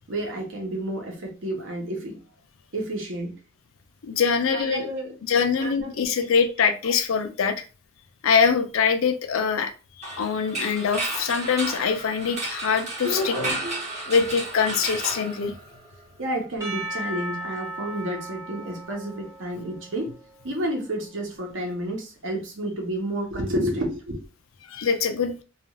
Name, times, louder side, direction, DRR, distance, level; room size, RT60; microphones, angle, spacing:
voice 1, 0.1-2.2 2.7-3.4 4.5-5.2 5.6-6.0 6.8-6.9 13.0-13.8 16.2-20.1 20.4-24.2, right 1 dB, 60° right, 0.8 m, -30 dB
voice 2, 4.0-4.9 5.3-7.6 8.2-9.7 10.0-13.3 14.1-15.5 24.7-25.4, left 6 dB, 70° left, 0.4 m, -23 dB
sound 1, 10.0-16.0, right 2 dB, 35° right, 0.8 m, -33 dB
Percussion / Church bell, 16.6-20.8, right 1 dB, 15° right, 0.5 m, -37 dB
2.4 x 2.3 x 2.9 m
head